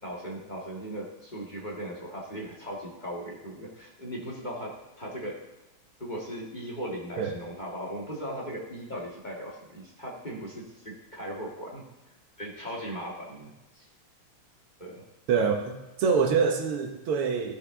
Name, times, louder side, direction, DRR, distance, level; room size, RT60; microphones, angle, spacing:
voice 1, 0.0-5.4 6.0-11.8 12.4-13.9 14.8-15.0, equal, 20° left, -3 dB, 1.8 m, -38 dB
voice 2, 15.3-17.6, right 6 dB, 85° right, 4 dB, 2.0 m, -25 dB
14.0 x 6.5 x 3.8 m, 0.94 s
omnidirectional pair, 2.4 m